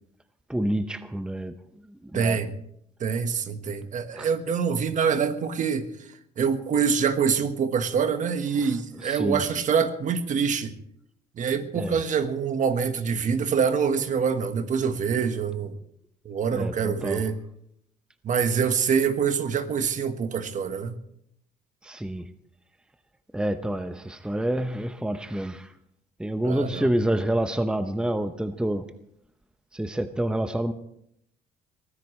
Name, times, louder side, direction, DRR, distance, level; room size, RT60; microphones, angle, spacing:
voice 1, 0.5-1.6 1.9-2.4 4.1-4.3 9.0-9.4 11.7-12.0 16.5-17.2 21.8-22.3 23.3-25.7 26.2-28.9 29.7-30.7, right 1 dB, 5° right, 9 dB, 0.8 m, -28 dB
voice 2, 2.1-2.5 3.0-5.9 6.4-10.7 11.4-15.8 16.2-17.4 18.2-21.0 26.4-26.9, right 6 dB, 50° right, 9 dB, 1.4 m, -25 dB
22.5 x 15.0 x 3.2 m, 0.73 s
cardioid pair, 110°, 17 cm